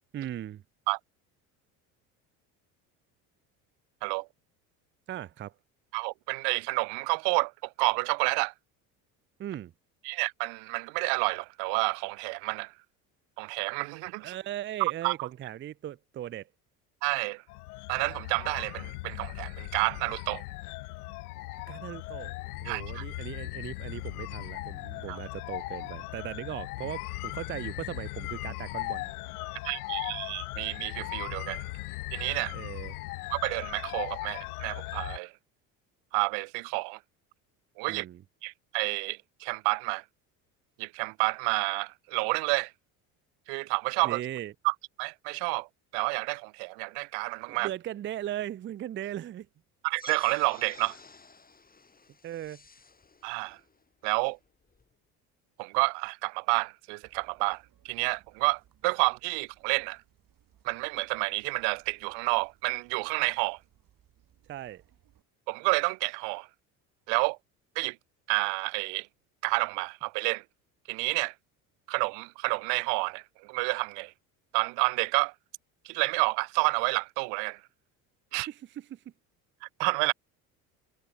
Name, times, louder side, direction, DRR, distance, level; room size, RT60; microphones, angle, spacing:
voice 1, 0.1-0.6 5.1-5.5 9.4-9.7 14.2-16.5 21.7-22.3 22.6-29.1 32.5-33.0 37.9-38.2 44.0-44.5 47.5-49.5 52.2-52.6 64.5-64.8 78.3-79.0, right 12 dB, 30° right, 0.5 m, -38 dB
voice 2, 5.9-8.5 10.0-12.7 13.4-14.3 15.0-15.1 17.0-17.4 17.9-20.4 22.7-23.0 25.1-25.2 29.6-31.6 32.1-32.6 33.3-35.3 36.1-37.0 37.8-38.0 38.4-40.0 40.8-42.7 43.5-44.2 44.6-45.7 45.9-47.7 49.8-51.0 53.2-53.6 54.0-54.4 55.6-60.0 60.6-63.6 65.5-66.5 67.1-67.4 67.8-68.0 68.3-69.1 69.4-70.4 70.9-71.3 71.9-73.2 73.5-74.1 74.5-75.3 75.8-77.6 78.3-78.5 79.6-80.1, right 35 dB, 70° right, 0.6 m, -29 dB
sound 1, 17.5-35.2, left 22 dB, 90° left, 0.7 m, -38 dB
sound 2, 49.9-54.9, left 4 dB, 20° left, 3.2 m, -53 dB
sound 3, 57.0-65.2, right 11 dB, 50° right, 4.2 m, -65 dB
hypercardioid pair, 75°, 43 cm